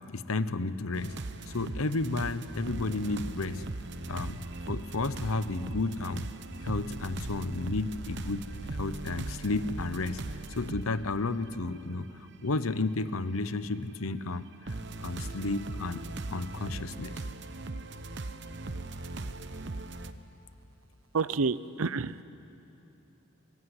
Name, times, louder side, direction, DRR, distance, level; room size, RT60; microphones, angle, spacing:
voice 1, 0.1-1.2 1.5-3.6 4.1-6.3 6.6-10.2 10.5-16.0 16.3-17.1, left 3 dB, 85° left, 13 dB, 0.9 m, -32 dB
sound 1, 0.9-10.9 11.5-11.6 12.5-12.6 14.7-20.1, right 2 dB, 55° right, 1.0 m, -39 dB
voice 2, 21.1-22.2, right 4 dB, 80° right, 16 dB, 0.6 m, -29 dB
24.5 x 21.0 x 9.8 m, 3.0 s
head